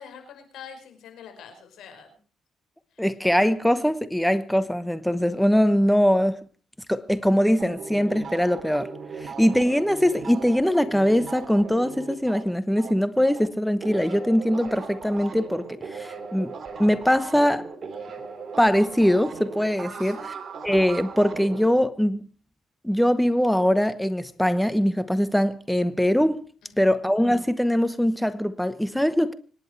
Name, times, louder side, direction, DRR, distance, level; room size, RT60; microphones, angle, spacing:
voice 1, 0.0-2.2 2.9-3.1 19.9-20.4 26.6-27.0, left 7 dB, 80° left, 5.6 m, -45 dB
voice 2, 3.0-6.4 6.9-8.9 9.2-16.5 16.8-17.7 18.6-20.2 20.6-22.2 22.8-26.4 26.8-29.3, equal, 5° left, 1.0 m, -22 dB
sound 1, 7.6-13.5 13.8-21.8, right 5 dB, 45° right, 3.0 m, -38 dB
25.5 x 10.5 x 4.7 m
cardioid pair, 90°, 0 cm